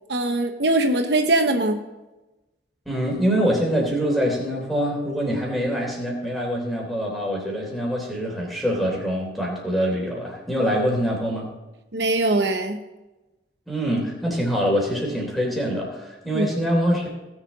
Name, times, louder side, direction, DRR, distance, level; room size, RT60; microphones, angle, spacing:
voice 1, 0.1-1.8 11.9-12.8 16.3-16.5, right 2 dB, 70° right, 5 dB, 1.0 m, -21 dB
voice 2, 2.8-11.5 13.7-17.1, equal, ahead, -2 dB, 3.3 m, -24 dB
18.5 x 7.2 x 4.1 m, 1.1 s
head